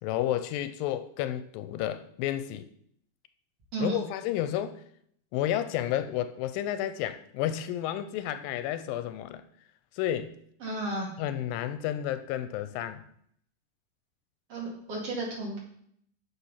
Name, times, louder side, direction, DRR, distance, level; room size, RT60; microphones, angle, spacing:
voice 1, 0.0-2.7 3.8-4.8 5.3-9.4 9.9-10.4 11.2-13.0, left 12 dB, 85° left, 2.3 m, -31 dB
voice 2, 3.7-4.0 10.6-11.1 14.5-15.6, right 2 dB, 45° right, 3.2 m, -33 dB
7.1 x 6.9 x 5.6 m
omnidirectional pair, 4.0 m